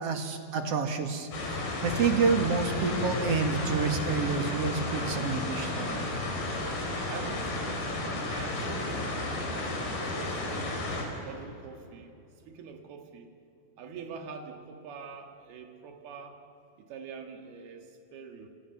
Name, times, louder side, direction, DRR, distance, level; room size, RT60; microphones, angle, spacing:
voice 1, 0.0-6.1, right 5 dB, 50° right, 6 dB, 2.3 m, -29 dB
sound 1, 1.3-11.0, left 2 dB, 70° left, 6.0 m, -32 dB
voice 2, 7.1-7.8 8.2-10.9 11.2-12.2 12.5-13.3 13.8-16.4 16.8-18.5, right 5 dB, 85° right, 5 dB, 3.9 m, -44 dB
28.5 x 28.0 x 7.1 m, 2.7 s
omnidirectional pair, 4.3 m